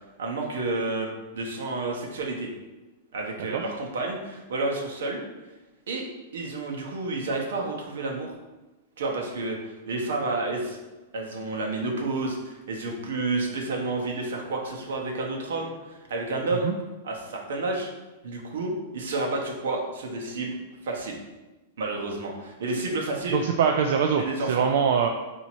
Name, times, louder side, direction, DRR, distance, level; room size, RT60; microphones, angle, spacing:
voice 1, 0.2-2.5 3.1-5.2 5.9-6.1 6.3-8.3 9.0-10.8 11.1-16.7 17.0-17.9 18.2-20.6 20.8-21.2 21.8-23.4 24.2-24.6, right 2 dB, 85° right, 0 dB, 1.0 m, -30 dB
voice 2, 23.3-25.1, right 6 dB, 65° right, 3 dB, 0.3 m, -23 dB
4.5 x 2.7 x 4.1 m, 1.1 s
supercardioid pair, 155°, 0 cm